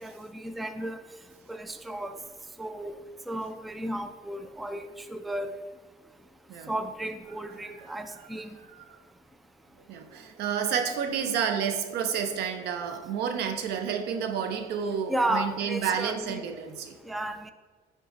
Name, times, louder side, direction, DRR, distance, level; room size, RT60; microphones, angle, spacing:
voice 1, 0.0-1.0 1.5-2.2 2.6-2.9 3.3-5.5 6.7-8.6 15.1-16.4 17.1-17.5, right 1 dB, ahead, 8 dB, 0.3 m, -33 dB
voice 2, 9.9-17.0, right 7 dB, 75° right, 7 dB, 0.7 m, -30 dB
9.8 x 3.8 x 2.6 m, 1.4 s
cardioid pair, 110°, 17 cm